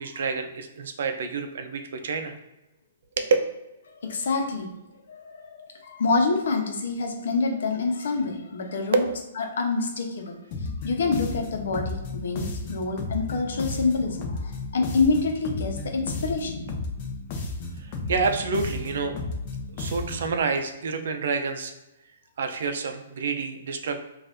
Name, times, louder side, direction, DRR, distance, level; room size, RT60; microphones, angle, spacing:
voice 1, 0.0-2.3 3.2-3.3 8.9-9.2 17.8-19.1 19.7-21.7 22.4-24.0, right 4 dB, 65° right, 6 dB, 0.6 m, -28 dB
voice 2, 4.0-4.7 5.1-9.0 9.4-16.6, left 4 dB, 75° left, 3 dB, 0.9 m, -27 dB
sound 1, 10.5-20.4, left 3 dB, 35° left, 0.7 m, -33 dB
5.4 x 2.6 x 2.6 m, 0.98 s
hypercardioid pair, 160°, 0 cm